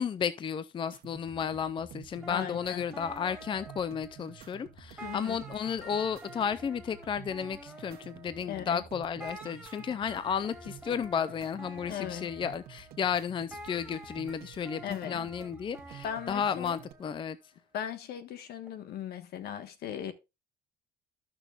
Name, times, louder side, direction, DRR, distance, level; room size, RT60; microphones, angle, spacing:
voice 1, 0.0-17.4, left 7 dB, 30° left, 0.5 m, -33 dB
sound 1, 0.9-16.9, right 8 dB, 70° right, 1.3 m, -51 dB
sound 2, 2.2-4.7 5.0-8.9 9.2-17.3 18.6-18.7, equal, 5° right, 3.8 m, -49 dB
voice 2, 2.3-2.8 5.0-5.4 8.5-8.8 11.9-12.3 14.8-15.3 16.0-16.8 17.7-20.1, left 9 dB, 70° left, 1.4 m, -38 dB
14.0 x 6.1 x 2.4 m
cardioid pair, 110°, 17 cm